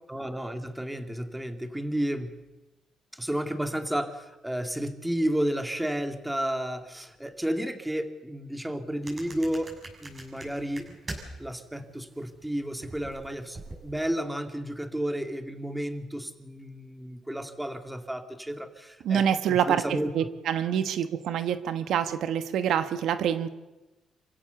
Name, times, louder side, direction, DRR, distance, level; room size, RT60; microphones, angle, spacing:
voice 1, 0.1-2.3 3.1-9.7 10.0-10.9 11.4-20.1, right 1 dB, 5° right, 7 dB, 2.3 m, -32 dB
sound 1, 9.0-11.5 11.8-14.1, right 2 dB, 30° right, 7.4 m, -43 dB
voice 2, 19.0-23.5, right 9 dB, 75° right, 11 dB, 1.2 m, -26 dB
27.0 x 16.0 x 7.0 m, 1.1 s
cardioid pair, 90°, 0 cm